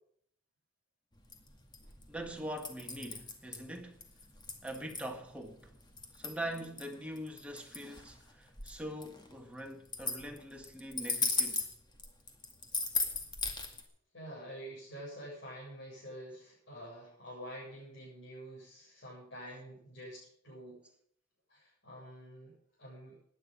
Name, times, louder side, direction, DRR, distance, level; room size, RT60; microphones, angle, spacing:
sound 1, 1.2-13.8, left 4 dB, 25° left, 2.2 m, -38 dB
voice 1, 2.1-4.0 4.6-5.7 6.2-11.7, right 1 dB, 5° right, 1.8 m, -43 dB
voice 2, 14.1-20.8 21.5-23.2, equal, 65° left, 7.7 m, -48 dB
17.0 x 10.5 x 5.4 m
head